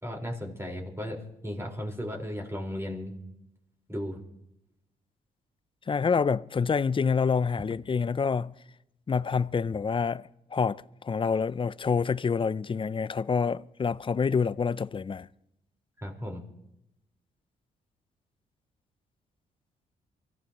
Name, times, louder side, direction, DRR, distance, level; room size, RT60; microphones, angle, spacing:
voice 1, 0.0-3.1 3.9-4.2 16.0-16.4, equal, 15° right, 4.6 m, -35 dB
voice 2, 5.9-8.5 9.1-15.3, left 5 dB, 30° left, 0.5 m, -27 dB
24.0 x 14.5 x 3.0 m
supercardioid pair, 55°, 18 cm